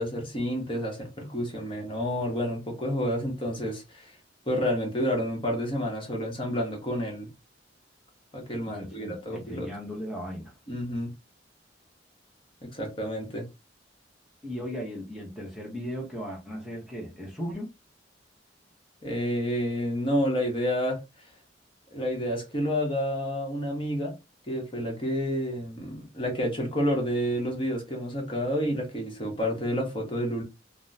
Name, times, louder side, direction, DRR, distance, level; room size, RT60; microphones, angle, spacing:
voice 1, 0.0-4.1 4.5-7.3 8.3-9.7 10.7-11.1 12.6-13.5 19.0-21.0 21.9-24.1 24.5-30.4, equal, 30° left, 0.9 m, -29 dB
voice 2, 8.7-10.5 14.4-17.7, equal, ahead, 0.8 m, -37 dB
3.5 x 2.1 x 2.6 m
head